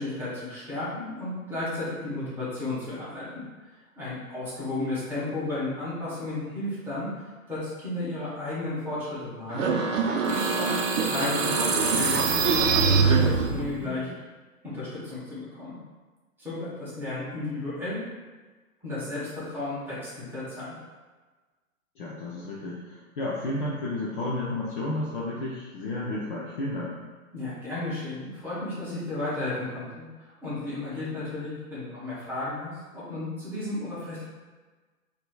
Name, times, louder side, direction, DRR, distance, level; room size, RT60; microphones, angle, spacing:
voice 1, 0.0-3.3 4.0-10.7 11.0-13.1 13.5-14.1 14.6-15.7 16.4-18.0 18.8-20.7 27.3-34.2, left 2 dB, 5° right, -10 dB, 1.0 m, -33 dB
sound 1, 9.5-13.8, right 4 dB, 60° right, 0.6 m, -23 dB
voice 2, 13.8-14.2 22.0-27.0, left 2 dB, 40° left, -5 dB, 0.5 m, -32 dB
4.1 x 2.7 x 2.2 m, 1.3 s
hypercardioid pair, 130°, 44 cm